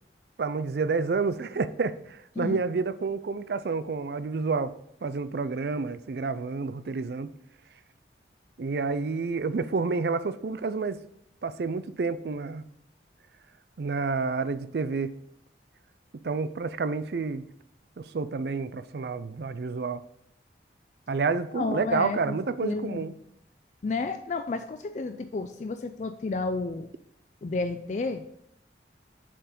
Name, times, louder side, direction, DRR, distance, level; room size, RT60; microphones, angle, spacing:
voice 1, 0.4-4.7 5.0-7.3 8.6-11.0 11.4-12.6 13.8-15.1 16.2-17.4 18.0-20.0 21.1-23.1, right 4 dB, 65° right, 13 dB, 0.4 m, -29 dB
voice 2, 21.5-22.4 22.6-23.1 23.8-26.9 27.4-28.2, left 3 dB, 40° left, 8 dB, 0.3 m, -31 dB
7.4 x 4.5 x 5.3 m, 0.74 s
head